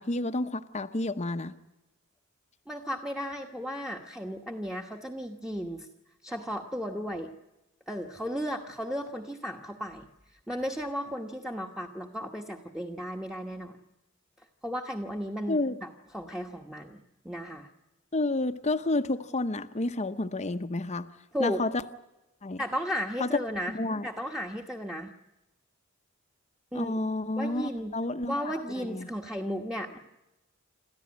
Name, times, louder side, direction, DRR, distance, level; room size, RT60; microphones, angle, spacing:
voice 1, 0.0-1.5 15.5-15.8 18.1-21.1 21.4-21.7 22.4-22.6 23.2-23.3 23.7-24.1 26.7-29.1, left 2 dB, 35° left, 8 dB, 0.8 m, -30 dB
voice 2, 2.7-5.9 6.2-7.3 7.9-10.1 10.5-13.8 14.6-17.7 21.3-21.6 22.6-23.8 24.0-25.1 26.7-26.9 27.4-28.0 28.3-30.0, equal, 5° right, 2 dB, 1.2 m, -35 dB
27.5 x 14.0 x 9.6 m, 0.98 s
head